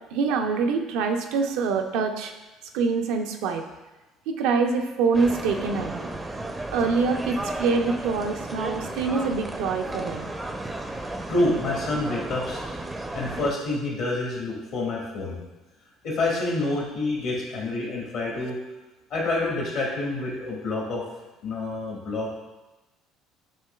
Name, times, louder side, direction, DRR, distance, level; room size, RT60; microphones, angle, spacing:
voice 1, 0.1-2.3 2.7-3.6 4.3-6.1 6.7-10.3, right 4 dB, 75° right, 5 dB, 0.4 m, -25 dB
sound 1, 5.1-13.5, right 2 dB, 15° right, 0.4 m, -34 dB
voice 2, 10.9-12.6 13.1-15.4 16.0-18.5 19.1-21.0 21.4-22.3, left 2 dB, 70° left, -3 dB, 1.6 m, -28 dB
7.5 x 3.0 x 2.3 m, 1.1 s
supercardioid pair, 75°, 0 cm